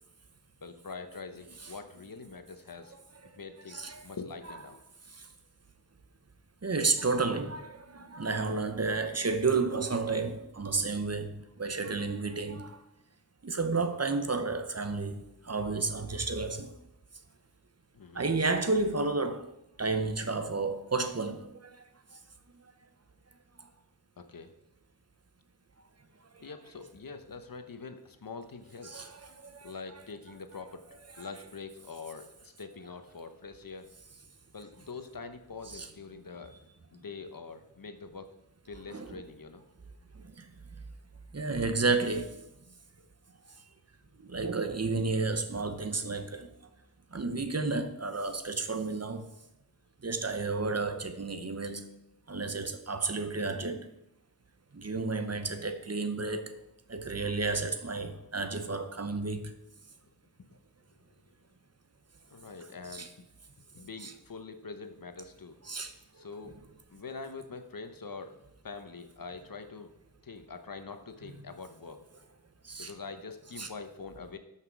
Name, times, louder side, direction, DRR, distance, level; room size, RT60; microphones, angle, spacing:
voice 1, 0.6-2.9 3.3-4.8 17.9-18.3 24.2-24.5 26.4-29.1 29.6-30.9 31.2-33.9 34.5-36.5 36.9-38.3 38.7-39.6 55.3-55.6 62.3-63.1 63.7-65.6 66.2-66.6 66.9-68.4 68.6-69.9 70.2-72.0 72.8-74.4, left 4 dB, 60° left, 1.0 m, -44 dB
voice 2, 3.7-4.0 6.6-12.8 13.4-16.7 18.1-19.5 19.8-21.7 26.4-26.5 28.8-29.7 31.2-31.3 35.7-35.9 38.9-39.2 40.4-40.5 41.3-42.4 44.2-46.5 47.1-49.2 50.0-51.9 52.3-53.9 54.7-56.5 56.9-59.5 62.9-63.1 64.0-64.1 65.6-65.9 71.2-71.4 72.6-72.9 73.6-73.7, right 3 dB, 40° right, 0.9 m, -31 dB
12.5 x 5.9 x 4.7 m
wide cardioid pair, 65°, 39 cm